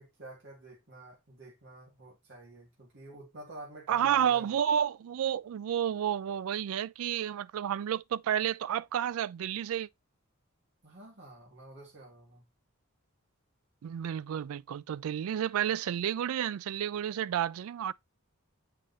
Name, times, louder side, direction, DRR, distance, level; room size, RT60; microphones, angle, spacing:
voice 1, 0.0-4.6 10.8-12.5, right 1 dB, 55° right, 2.1 m, -50 dB
voice 2, 3.9-9.9 13.8-17.9, right 9 dB, 75° right, 0.3 m, -31 dB
7.5 x 5.0 x 2.6 m
head